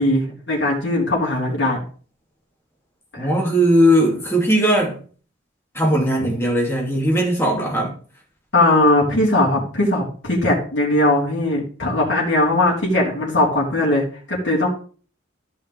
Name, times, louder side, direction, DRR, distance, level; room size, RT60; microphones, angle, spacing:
voice 1, 0.0-1.8 3.1-3.3 8.5-14.7, left 1 dB, 70° left, 3.5 m, -19 dB
voice 2, 3.2-5.0 5.7-7.9, equal, 15° left, 2.6 m, -18 dB
13.5 x 5.6 x 3.5 m
head